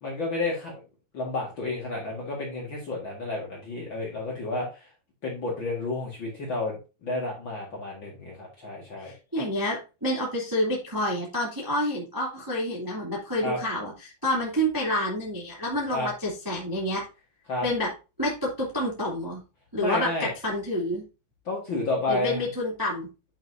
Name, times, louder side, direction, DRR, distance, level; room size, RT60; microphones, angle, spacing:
voice 1, 0.0-0.7 1.1-4.9 5.2-9.1 13.4-13.6 15.9-16.1 17.5-17.7 19.8-20.3 21.4-22.4, left 2 dB, 85° left, -3 dB, 1.0 m, -31 dB
voice 2, 9.0-17.0 17.6-17.9 18.2-19.4 19.7-21.0 22.1-23.1, left 1 dB, 5° right, -3 dB, 1.5 m, -28 dB
10.5 x 6.3 x 2.7 m, 0.30 s
omnidirectional pair, 5.6 m